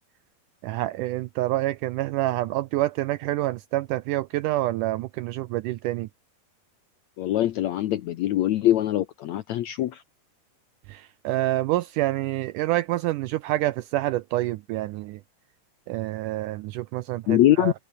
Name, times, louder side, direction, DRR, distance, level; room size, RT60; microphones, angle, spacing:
voice 1, 0.6-6.1 10.9-15.2 15.9-17.7, right 16 dB, 80° right, 1.9 m, -27 dB
voice 2, 7.2-10.0 17.3-17.7, left 13 dB, 75° left, 1.7 m, -23 dB
omnidirectional pair, 4.2 m